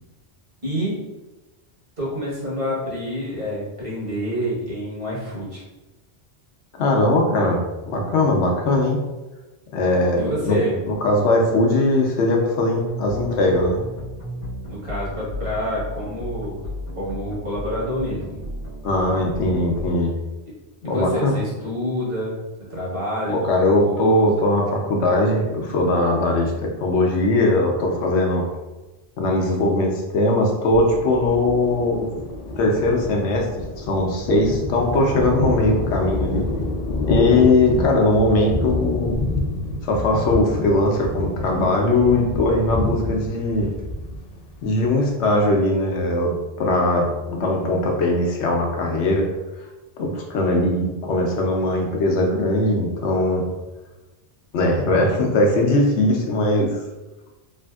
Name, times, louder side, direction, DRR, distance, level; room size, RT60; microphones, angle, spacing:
voice 1, 0.6-1.1 2.0-5.6 10.2-10.8 14.7-16.6 16.9-18.4 20.8-24.3, equal, 30° right, -8 dB, 1.2 m, -27 dB
voice 2, 6.8-7.6 7.9-9.0 9.7-10.6 10.8-13.8 18.8-20.1 20.8-21.3 23.3-28.5 29.2-32.1 32.6-36.5 37.1-39.2 39.8-43.7 44.6-49.3 50.0-53.4 54.5-56.8, left 2 dB, 85° left, 0 dB, 0.9 m, -20 dB
sound 1, 12.9-19.9, left 1 dB, 85° right, 1.7 m, -34 dB
Thunder, 30.7-45.5, left 2 dB, 55° left, 0.4 m, -28 dB
3.3 x 2.5 x 2.3 m, 1.1 s
omnidirectional pair, 1.1 m